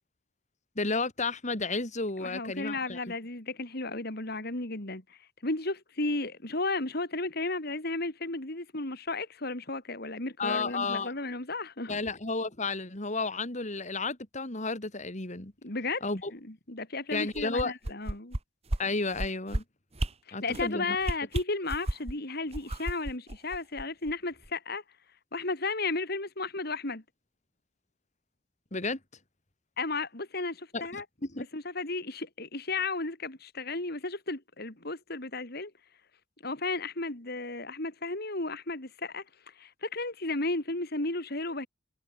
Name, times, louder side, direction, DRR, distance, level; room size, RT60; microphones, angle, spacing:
voice 1, 0.8-3.1 10.4-11.1 11.9-15.5 16.0-16.3 17.1-17.7 18.8-19.6 20.3-21.0 28.7-29.0 30.7-31.0 31.4-31.5, left 3 dB, 40° left, 2.9 m, -32 dB
voice 2, 2.2-12.0 15.6-16.0 16.3-18.4 20.3-24.8 25.3-27.0 29.8-31.0 31.5-35.7 36.4-41.7, left 3 dB, 55° left, 3.6 m, -34 dB
sound 1, 17.3-18.4 18.7-18.8 19.1-19.6 20.0-20.1 20.5-20.7 21.0-22.1 22.5-24.1 24.5-24.6, right 1 dB, 35° right, 1.6 m, -32 dB
head